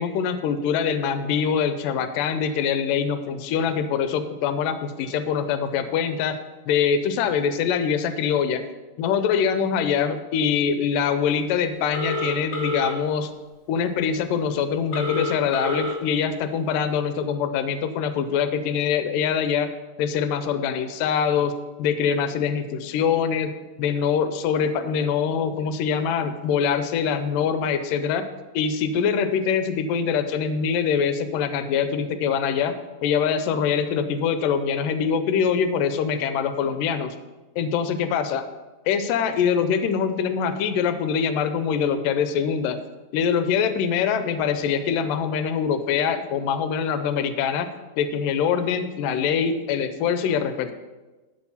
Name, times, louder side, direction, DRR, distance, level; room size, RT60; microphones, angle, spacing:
voice 1, 0.0-6.4 6.7-8.6 9.0-13.3 13.7-19.7 20.0-21.5 21.8-23.5 23.8-28.3 28.5-32.7 33.0-37.2 37.6-38.4 38.9-42.8 43.1-47.7 48.0-50.7, left 7 dB, 80° left, 10 dB, 2.2 m, -24 dB
Telephone, 11.9-12.9 14.9-15.9, left 1 dB, 65° left, 1.1 m, -28 dB
12.0 x 5.0 x 5.5 m, 1.2 s
omnidirectional pair, 4.1 m